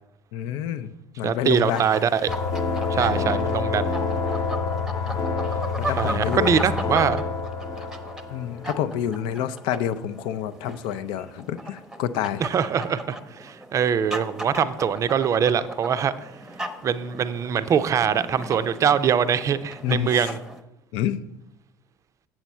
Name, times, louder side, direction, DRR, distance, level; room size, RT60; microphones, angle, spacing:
voice 1, 0.3-1.9 3.0-3.5 5.1-5.2 5.8-6.6 7.8-7.9 8.3-12.4 19.8-20.3 20.9-21.2, left 10 dB, 55° left, 14 dB, 0.5 m, -28 dB
voice 2, 1.2-2.3 2.9-4.0 6.0-7.2 12.4-16.3 16.8-20.4, right 7 dB, 30° right, 13 dB, 0.5 m, -23 dB
sound 1, 1.6-20.6, right 1 dB, 5° right, 0.8 m, -37 dB
sound 2, 2.3-9.5, left 4 dB, 35° left, 1.0 m, -28 dB
7.9 x 7.5 x 4.3 m, 0.86 s
figure-of-eight pair, 65°, 10 cm